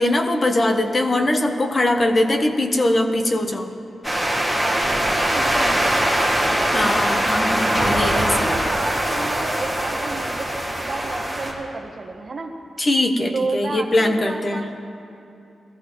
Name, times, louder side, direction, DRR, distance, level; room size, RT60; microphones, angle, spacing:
voice 1, 0.0-3.7 6.7-8.6 12.8-14.7, left 1 dB, 30° left, 5 dB, 1.0 m, -21 dB
sound 1, 4.0-11.5, right 1 dB, 10° left, 2.1 m, -22 dB
voice 2, 4.3-6.3 6.7-7.0 8.1-12.6 13.3-14.7, right 3 dB, 45° right, 3 dB, 1.2 m, -31 dB
21.0 x 14.0 x 3.1 m, 2.7 s
wide cardioid pair, 125°, 0 cm